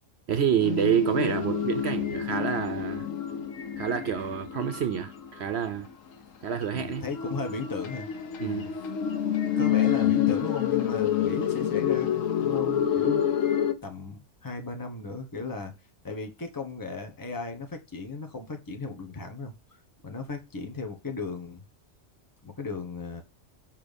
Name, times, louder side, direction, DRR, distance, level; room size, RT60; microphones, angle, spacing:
voice 1, 0.3-3.1 3.8-5.9 6.4-7.1 8.4-8.8, right 8 dB, 60° right, 0.9 m, -28 dB
sound 1, 0.6-5.8 6.6-13.7, left 9 dB, 90° left, 1.3 m, -28 dB
voice 2, 6.7-8.1 8.4-8.7 9.4-13.2 13.8-15.7 16.0-19.5 20.0-21.6 22.4-23.2, left 4 dB, 15° left, 1.3 m, -36 dB
7.4 x 4.5 x 5.2 m
omnidirectional pair, 1.3 m